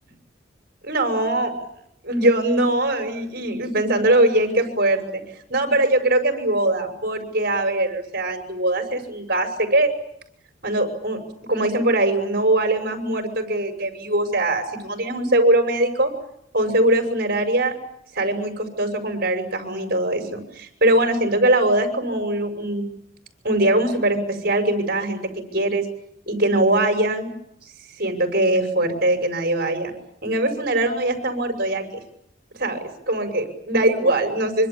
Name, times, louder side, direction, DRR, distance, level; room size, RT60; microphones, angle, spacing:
voice 1, 0.8-1.5 2.0-5.0 5.5-9.9 10.6-11.2 11.5-16.1 16.5-17.7 18.1-22.8 23.4-25.8 26.3-27.3 28.0-29.9 30.2-31.9 32.6-32.8 33.1-34.7, right 1 dB, 55° right, 6 dB, 6.6 m, -21 dB
25.5 x 25.0 x 8.7 m, 0.74 s
head